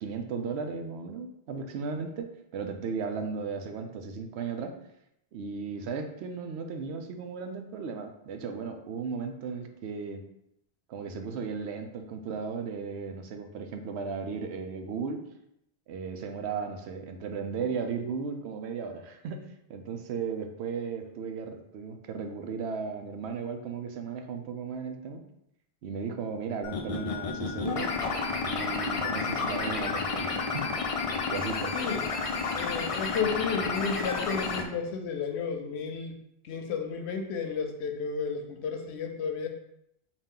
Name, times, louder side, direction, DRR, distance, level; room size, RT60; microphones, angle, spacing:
voice 1, 0.0-4.7 5.3-10.2 10.9-15.2 15.9-25.3 25.8-27.9 28.4-30.7 31.3-31.7, right 5 dB, 90° right, 5 dB, 0.9 m, -35 dB
sound 1, 26.6-34.6, left 4 dB, 55° left, 0.4 m, -31 dB
voice 2, 31.7-32.1 32.5-36.2 36.4-39.5, left 5 dB, 90° left, 5 dB, 0.9 m, -32 dB
4.0 x 2.4 x 3.7 m, 0.78 s
omnidirectional pair, 1.1 m